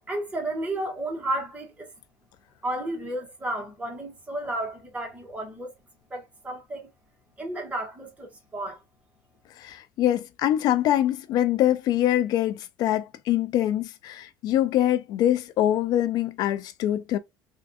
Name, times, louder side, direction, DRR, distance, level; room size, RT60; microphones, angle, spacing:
voice 1, 0.1-1.9 2.6-5.7 6.1-6.9 7.4-8.8, right 1 dB, 15° right, 1.4 m, -32 dB
voice 2, 9.6-17.2, left 12 dB, 60° left, 0.3 m, -24 dB
3.5 x 2.5 x 2.3 m
cardioid pair, 110°, 8 cm